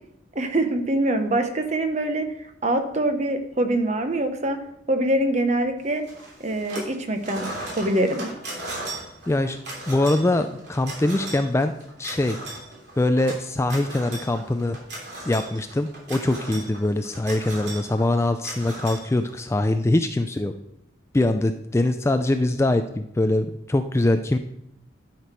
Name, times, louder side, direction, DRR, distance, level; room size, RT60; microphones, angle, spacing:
voice 1, 0.3-2.3 2.6-4.6 4.9-6.0 6.4-7.4 7.8-8.3, right 1 dB, 35° right, 7 dB, 1.0 m, -24 dB
sound 1, 6.1-6.9 7.2-19.6, right 1 dB, 55° right, 3.2 m, -37 dB
voice 2, 9.3-9.6 9.9-11.7 12.0-12.4 13.0-14.8 15.3-20.5 21.1-24.4, left 2 dB, 15° left, 8 dB, 0.3 m, -23 dB
11.5 x 5.9 x 4.5 m, 0.79 s
head